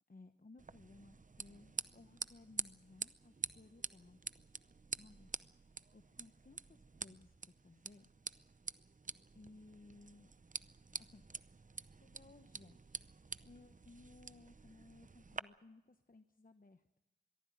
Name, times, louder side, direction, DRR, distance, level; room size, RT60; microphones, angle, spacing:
voice 1, 0.1-4.4 5.0-5.3 5.6-8.1 9.3-10.3 11.0-11.2 12.0-13.0 13.4-17.0, left 2 dB, 55° left, 8 dB, 1.1 m, -60 dB
sound 1, 0.6-15.4, right 4 dB, 50° right, 0.6 m, -48 dB
22.5 x 14.5 x 9.3 m, 1.0 s
wide cardioid pair, 60°, 17 cm